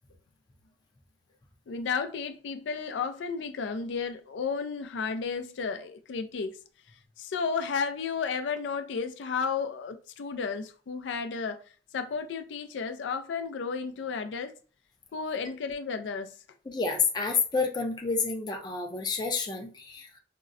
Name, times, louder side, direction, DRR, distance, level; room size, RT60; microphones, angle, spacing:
voice 1, 1.7-6.6 7.2-11.6 11.9-14.5 15.1-16.3, left 5 dB, 85° left, 0.4 m, -33 dB
voice 2, 16.7-20.2, left 4 dB, 25° left, 0.4 m, -29 dB
3.6 x 2.0 x 2.5 m
head